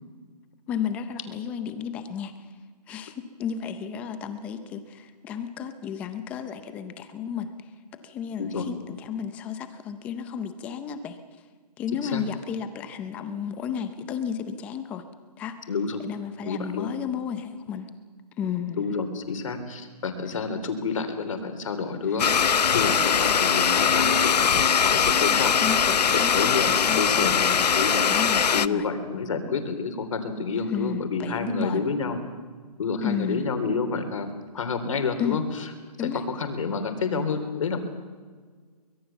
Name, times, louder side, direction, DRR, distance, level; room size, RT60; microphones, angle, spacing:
voice 1, 0.7-2.3 2.9-3.1 3.4-7.5 8.0-11.2 11.8-15.0 15.4-15.6 16.0-17.9 18.4-18.9 22.1-22.2 25.3-27.7 28.1-28.9 30.7-31.8 33.0-33.5 35.2-35.4 36.0-36.2, left 8 dB, 5° left, 10 dB, 0.6 m, -32 dB
voice 2, 15.7-16.0 16.5-16.9 18.8-25.5 26.1-27.4 27.8-28.0 28.5-32.2 32.8-35.7 36.1-37.8, left 4 dB, 50° left, 8 dB, 3.5 m, -29 dB
Domestic sounds home sounds, 22.2-28.7, left 7 dB, 80° left, 0.8 m, -21 dB
24.0 x 21.5 x 7.1 m, 1.6 s
hypercardioid pair, 170°, 21 cm